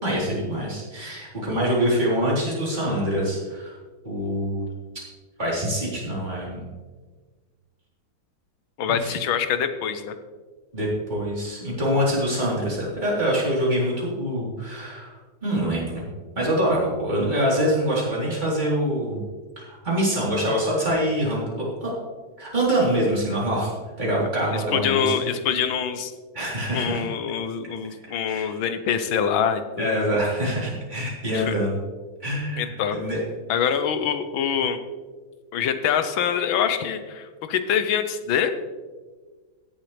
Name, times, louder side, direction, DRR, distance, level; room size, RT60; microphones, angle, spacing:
voice 1, 0.0-3.7 4.0-4.7 5.4-6.6 8.9-9.2 10.7-16.0 16.4-19.2 19.6-21.9 22.4-23.7 24.0-25.1 26.3-27.1 28.3-28.6 29.8-31.8 32.2-33.2, equal, 20° right, -6 dB, 3.8 m, -25 dB
voice 2, 8.8-10.1 24.5-26.1 26.7-30.2 31.3-31.6 32.5-33.0 33.5-34.8 35.5-38.5, left 8 dB, 80° left, 9 dB, 1.6 m, -25 dB
16.5 x 7.4 x 3.3 m, 1.4 s
omnidirectional pair, 2.2 m